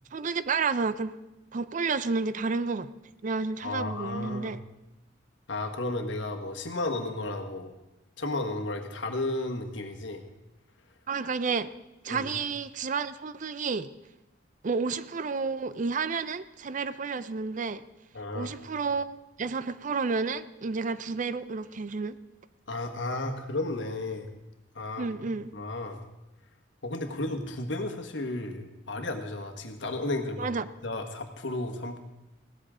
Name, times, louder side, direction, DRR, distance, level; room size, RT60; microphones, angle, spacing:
voice 1, 0.1-1.1 1.5-2.9 3.2-4.6 11.1-11.7 12.0-13.9 14.6-17.8 18.3-22.2 25.0-25.5 30.4-30.7, right 4 dB, 45° right, 15 dB, 0.5 m, -31 dB
voice 2, 3.6-4.6 5.5-7.7 8.2-10.2 12.1-12.3 18.1-18.5 22.7-24.3 24.7-25.1 25.5-26.0 26.8-30.5 30.8-32.0, left 2 dB, 75° left, 4 dB, 1.5 m, -33 dB
16.5 x 13.5 x 3.7 m, 0.97 s
head